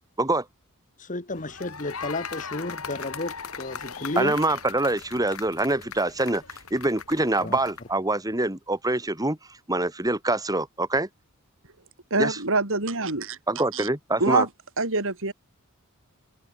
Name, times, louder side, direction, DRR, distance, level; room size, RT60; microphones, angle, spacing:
voice 1, 1.0-4.4 7.4-7.6, left 2 dB, 35° left, 2.1 m, -32 dB
sound 1, 1.3-8.0, left 6 dB, 70° left, 5.4 m, -39 dB
voice 2, 4.2-6.4 6.7-9.4 9.7-11.1 12.2-12.4 13.5-14.5, right 2 dB, 15° right, 2.6 m, -25 dB
voice 3, 12.1-13.4 13.7-13.9 14.2-14.5 14.8-15.3, right 3 dB, 60° right, 4.4 m, -25 dB
open air
head